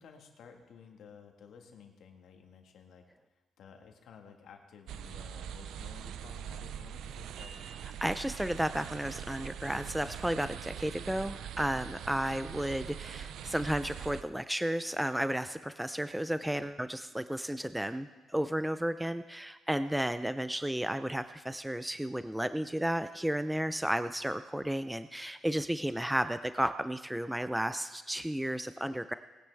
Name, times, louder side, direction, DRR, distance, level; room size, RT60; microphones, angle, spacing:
voice 1, 0.0-3.1 3.6-7.6, left 6 dB, 70° left, 4 dB, 1.6 m, -54 dB
sound 1, 4.9-14.2, right 9 dB, 80° right, 0.4 m, -43 dB
voice 2, 8.0-29.1, right 1 dB, 5° right, 11 dB, 0.4 m, -33 dB
19.0 x 9.4 x 3.4 m, 1.2 s
cardioid pair, 90°, 0 cm